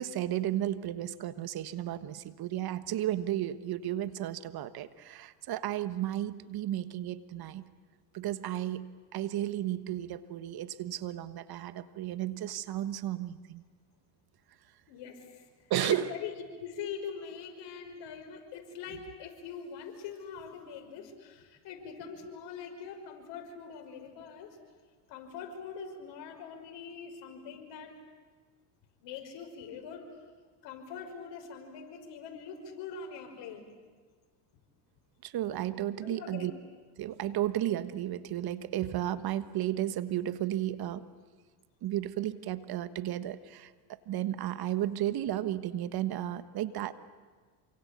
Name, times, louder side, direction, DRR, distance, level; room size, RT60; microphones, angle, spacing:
voice 1, 0.0-7.7 8.1-13.6 15.7-16.1 35.2-36.5 37.0-41.1 41.8-46.9, right 12 dB, 50° right, 13 dB, 1.4 m, -33 dB
voice 2, 14.9-15.5 15.8-16.3 16.6-24.6 25.1-27.9 29.0-30.1 30.6-33.6 36.0-36.5, left 6 dB, 60° left, 4 dB, 5.9 m, -43 dB
27.5 x 25.0 x 8.5 m, 1.5 s
supercardioid pair, 85°, 48 cm